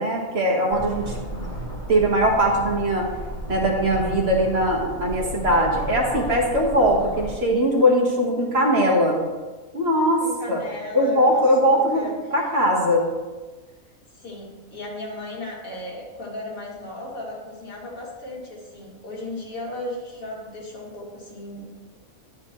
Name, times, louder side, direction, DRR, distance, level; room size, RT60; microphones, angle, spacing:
voice 1, 0.0-1.5 1.9-3.1 3.5-9.2 9.7-10.2 10.5-10.6 10.9-13.1, equal, 45° right, -1 dB, 1.6 m, -20 dB
sound 1, 0.7-7.3, equal, 15° left, 1.8 m, -33 dB
voice 2, 10.2-12.3 14.1-22.0, left 1 dB, 70° left, -5 dB, 2.9 m, -36 dB
11.0 x 8.6 x 3.1 m, 1.3 s
omnidirectional pair, 1.5 m